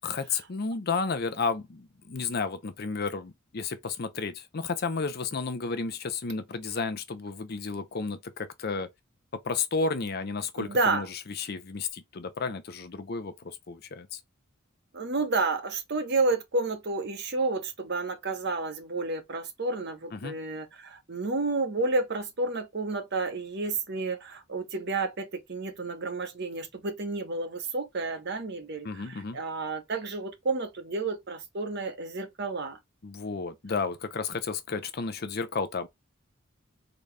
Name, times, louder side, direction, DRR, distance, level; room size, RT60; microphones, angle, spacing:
voice 1, 0.0-8.9 9.4-14.2 20.1-20.4 28.8-29.4 33.0-35.9, left 4 dB, 50° left, 0.6 m, -32 dB
voice 2, 10.6-11.1 14.9-32.8, right 3 dB, 55° right, 0.9 m, -30 dB
3.9 x 2.3 x 3.3 m
head